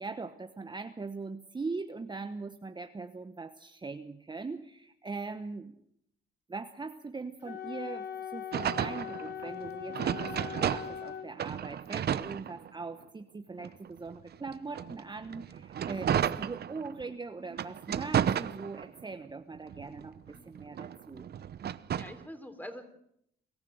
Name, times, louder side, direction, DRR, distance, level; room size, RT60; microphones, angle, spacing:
voice 1, 0.0-5.8 6.5-21.3, right 4 dB, 20° right, 7 dB, 1.1 m, -41 dB
Wind instrument woodwind instrument, 7.4-11.3, left 9 dB, 60° left, 3.4 m, -40 dB
sound 1, 8.5-11.1 11.4-13.0 13.6-17.0 17.5-19.1 19.5-22.2, right 9 dB, 55° right, 0.9 m, -33 dB
voice 2, 21.9-22.8, left 1 dB, 10° left, 7 dB, 3.8 m, -45 dB
24.0 x 14.0 x 7.9 m, 0.73 s
cardioid pair, 90°, 20 cm